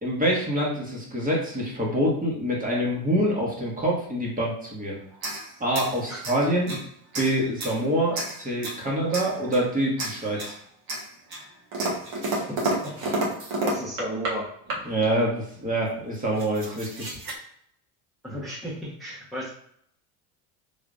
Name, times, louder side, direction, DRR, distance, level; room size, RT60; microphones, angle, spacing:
voice 1, 0.0-5.0 5.6-6.8 7.1-10.5 14.8-17.2, right 1 dB, 20° right, -3 dB, 1.5 m, -26 dB
sound 1, 5.1-6.8 7.1-7.8 8.1-8.8 9.1-9.7 10.0-10.6 10.9-14.4 14.7-15.1 15.8-17.3, right 2 dB, 50° right, 1.5 m, -31 dB
voice 2, 13.6-14.5 18.2-19.5, right 1 dB, ahead, -7 dB, 1.2 m, -33 dB
3.5 x 3.1 x 2.6 m, 0.68 s
hypercardioid pair, 80°, 46 cm